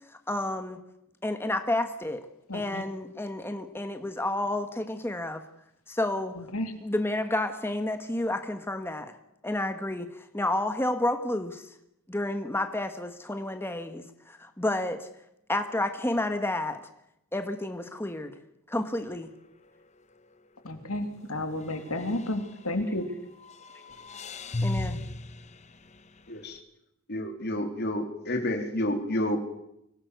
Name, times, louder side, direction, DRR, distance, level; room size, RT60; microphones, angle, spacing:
voice 1, 0.1-0.8 1.2-2.2 2.5-5.4 5.9-6.4 6.8-9.1 9.4-11.7 12.1-15.1 15.5-16.8 17.3-18.3 18.7-19.3 24.6-25.0, left 1 dB, 10° left, 7 dB, 1.4 m, -30 dB
voice 2, 2.5-2.8 6.4-6.7 20.6-23.1, left 1 dB, 80° left, 7 dB, 3.1 m, -32 dB
sound 1, 19.0-19.3 19.7-19.8 21.6-23.1 23.4-26.4, left 2 dB, 30° left, 1.0 m, -36 dB
voice 3, 26.3-26.6 27.1-29.4, left 1 dB, 50° left, 5 dB, 3.6 m, -29 dB
25.0 x 17.5 x 8.2 m, 0.82 s
head